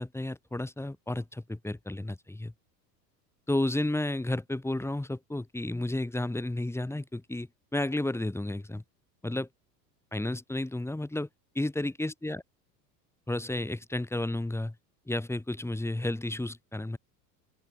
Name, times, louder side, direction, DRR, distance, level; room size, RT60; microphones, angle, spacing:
voice 1, 0.0-2.5 3.5-8.8 9.2-9.5 10.1-11.3 11.6-12.4 13.3-14.8 15.1-17.0, left 1 dB, 5° left, 2.1 m, -32 dB
open air
hypercardioid pair, 80°, 50 cm